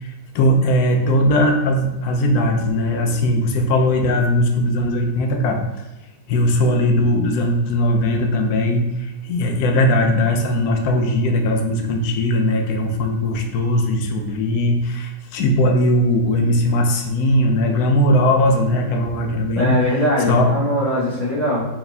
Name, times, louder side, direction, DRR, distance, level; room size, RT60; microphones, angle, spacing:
voice 1, 0.0-5.6 6.3-19.8 20.3-20.5, left 1 dB, 70° left, 4 dB, 0.9 m, -19 dB
voice 2, 19.5-21.7, left 1 dB, 30° left, -9 dB, 0.8 m, -20 dB
4.6 x 3.4 x 3.3 m, 1.0 s
omnidirectional pair, 2.2 m